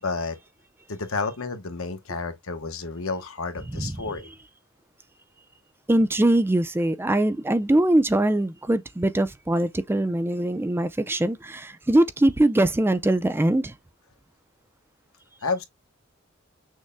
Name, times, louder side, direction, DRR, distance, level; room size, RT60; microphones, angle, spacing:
voice 1, 0.0-0.4 0.9-4.3 15.4-15.6, left 4 dB, 80° left, 1.1 m, -30 dB
voice 2, 5.9-13.7, right 1 dB, 10° right, 0.4 m, -22 dB
6.3 x 2.1 x 3.4 m
head